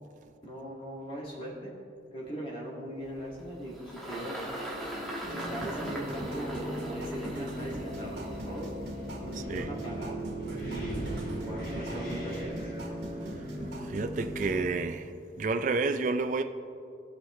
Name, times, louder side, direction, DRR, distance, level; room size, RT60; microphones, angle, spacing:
voice 1, 0.4-1.7 2.1-4.5 5.3-8.7 9.2-10.2 10.7-12.7, equal, 30° left, 2.1 m, -40 dB
Engine, 3.0-9.6, right 1 dB, ahead, 1.4 m, -41 dB
sound 1, 5.2-14.6, right 1 dB, 70° right, 2.2 m, -38 dB
Wind, 7.9-14.5, equal, 60° left, 2.5 m, -44 dB
voice 2, 13.8-15.1 15.4-16.4, right 3 dB, 45° right, 0.4 m, -30 dB
19.0 x 6.4 x 3.2 m
head